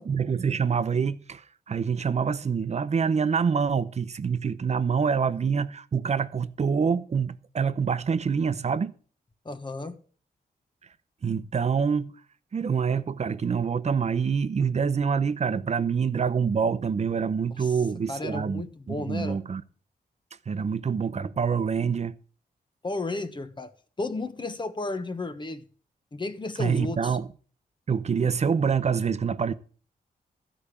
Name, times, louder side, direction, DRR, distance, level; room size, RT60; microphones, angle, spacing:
voice 1, 0.0-8.9 11.2-12.1 12.5-19.6 20.5-22.1 26.6-27.3 27.9-29.5, right 6 dB, 45° right, 0.8 m, -26 dB
voice 2, 9.4-10.0 17.6-17.7 18.1-19.4 22.8-23.7 24.0-25.6 26.1-27.2, left 2 dB, 30° left, 1.2 m, -33 dB
15.0 x 5.2 x 8.5 m
wide cardioid pair, 120°, 16 cm